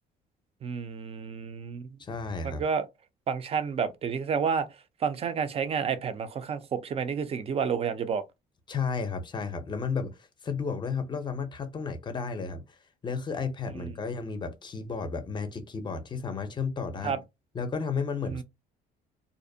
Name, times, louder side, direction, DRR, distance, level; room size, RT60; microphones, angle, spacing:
voice 1, 0.6-1.9 2.4-2.9 3.3-4.7 5.0-8.2 13.7-13.9 17.0-17.2 18.3-18.4, right 6 dB, 35° right, 0.4 m, -30 dB
voice 2, 2.0-2.6 8.7-12.6 13.0-17.1 17.5-18.4, left 5 dB, 25° left, 0.6 m, -33 dB
2.5 x 2.0 x 2.6 m
cardioid pair, 110°, 17 cm